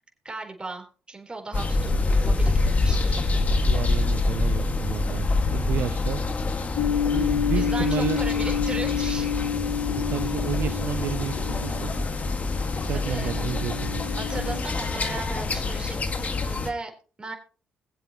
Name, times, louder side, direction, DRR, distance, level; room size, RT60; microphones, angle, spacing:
voice 1, 0.2-3.2 7.1-9.3 12.9-13.5 14.2-17.3, right 3 dB, 25° right, 3 dB, 4.1 m, -37 dB
sound 1, 1.5-16.7, left 3 dB, 40° left, 1.9 m, -26 dB
voice 2, 3.7-6.2 7.1-8.2 10.1-11.9 12.8-14.0, right 11 dB, 70° right, 14 dB, 0.4 m, -31 dB
sound 2, 6.8-14.6, left 8 dB, 80° left, 1.1 m, -29 dB
22.0 x 7.7 x 3.1 m, 0.37 s
supercardioid pair, 60°, 4 cm